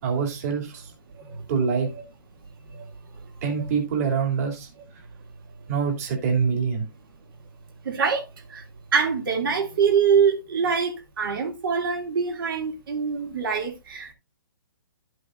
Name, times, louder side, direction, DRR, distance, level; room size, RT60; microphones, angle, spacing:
voice 1, 0.0-0.9 1.5-1.9 3.4-4.7 5.7-6.8, right 6 dB, 40° right, 3.0 m, -25 dB
voice 2, 7.8-8.2 8.5-8.6 8.9-14.1, right 6 dB, 65° right, 2.7 m, -24 dB
12.0 x 8.1 x 2.6 m
hypercardioid pair, 155°, 12 cm